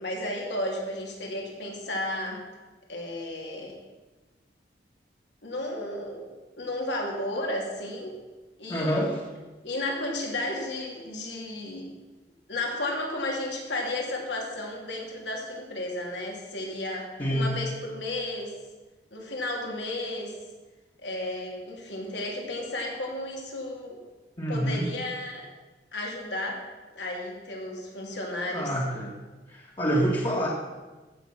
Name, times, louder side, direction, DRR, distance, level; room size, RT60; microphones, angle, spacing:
voice 1, 0.0-2.4 2.9-3.8 5.4-6.3 6.6-8.2 8.6-9.1 9.6-11.9 12.5-18.5 19.1-20.3 21.0-24.0 24.5-25.5 25.9-26.6 27.0-28.7, left 1 dB, 80° left, 0 dB, 2.8 m, -33 dB
voice 2, 8.7-9.2 17.2-17.5 24.4-24.9 28.5-29.2 29.5-30.5, equal, 30° left, -3 dB, 1.6 m, -27 dB
15.0 x 7.2 x 5.8 m, 1.2 s
head